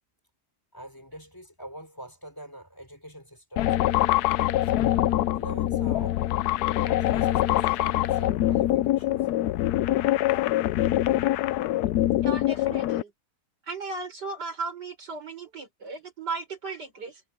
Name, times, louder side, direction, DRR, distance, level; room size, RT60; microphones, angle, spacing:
voice 1, 0.7-3.7 4.8-5.1 5.3-6.4 6.9-9.1 10.3-10.4, right 1 dB, 10° left, 4.4 m, -44 dB
sound 1, 3.6-13.0, left 14 dB, 75° left, 1.0 m, -24 dB
voice 2, 12.2-13.1 13.6-17.2, right 4 dB, 85° right, 5.8 m, -36 dB
omnidirectional pair, 1.8 m